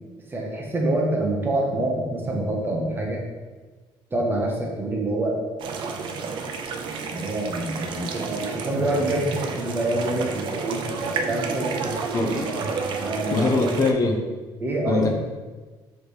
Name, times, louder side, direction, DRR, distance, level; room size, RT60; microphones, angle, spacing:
voice 1, 0.3-3.2 4.1-5.4 6.2-6.5 7.1-10.8 11.2-12.3 13.0-13.7 14.6-15.1, right 1 dB, 25° right, -1 dB, 0.9 m, -26 dB
sound 1, 5.6-13.9, right 5 dB, 65° right, 0.4 m, -31 dB
voice 2, 12.1-12.7 13.3-14.2 14.9-15.1, left 3 dB, 40° left, 3 dB, 0.6 m, -22 dB
3.3 x 3.2 x 4.3 m, 1.3 s
cardioid pair, 115°, 9 cm